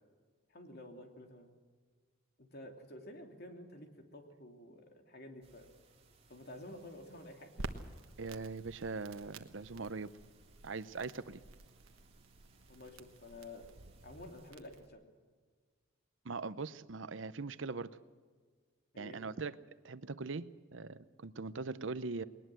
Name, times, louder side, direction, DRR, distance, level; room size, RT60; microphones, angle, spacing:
voice 1, 0.5-1.5 2.4-5.7 6.3-7.7 12.7-13.7 14.0-15.0 18.9-19.2, left 1 dB, 55° left, 4 dB, 2.9 m, -51 dB
sound 1, 5.4-14.5, right 3 dB, 30° right, 2.8 m, -67 dB
Crackle, 7.6-14.9, right 2 dB, 85° right, 1.3 m, -51 dB
voice 2, 8.2-10.1 10.6-11.4 16.2-17.9 19.0-19.5 19.8-22.2, right 4 dB, 65° right, 15 dB, 0.7 m, -41 dB
20.5 x 19.5 x 7.7 m, 1.5 s
head